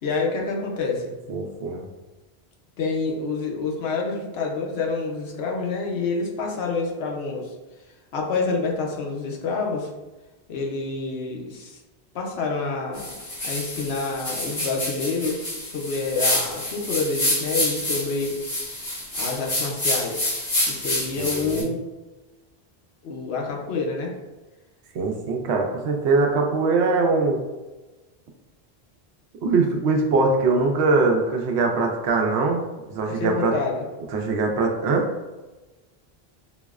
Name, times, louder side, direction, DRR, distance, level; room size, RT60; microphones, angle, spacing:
voice 1, 0.0-1.1 2.8-7.5 8.1-9.9 10.5-11.8 12.1-13.1 13.4-18.3 19.2-20.3 20.7-21.8 23.0-24.1 33.0-33.9, left 4 dB, 75° left, 0 dB, 0.9 m, -27 dB
voice 2, 1.3-1.9 21.2-21.7 24.9-27.4 29.4-32.6 32.9-33.5 34.1-35.1, right 3 dB, 90° right, 2 dB, 0.9 m, -22 dB
sound 1, 12.9-21.6, left 1 dB, 60° left, 1.6 m, -28 dB
5.2 x 2.0 x 2.3 m, 1.1 s
omnidirectional pair, 1.1 m